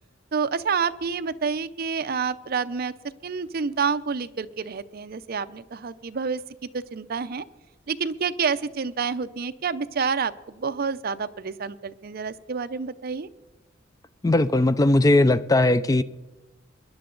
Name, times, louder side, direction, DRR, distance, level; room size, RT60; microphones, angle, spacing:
voice 1, 0.3-2.9 3.2-6.4 6.7-7.4 7.9-13.3, right 5 dB, 50° right, 0.5 m, -28 dB
voice 2, 14.2-16.0, left 2 dB, 20° left, 0.4 m, -19 dB
23.0 x 10.5 x 3.9 m
head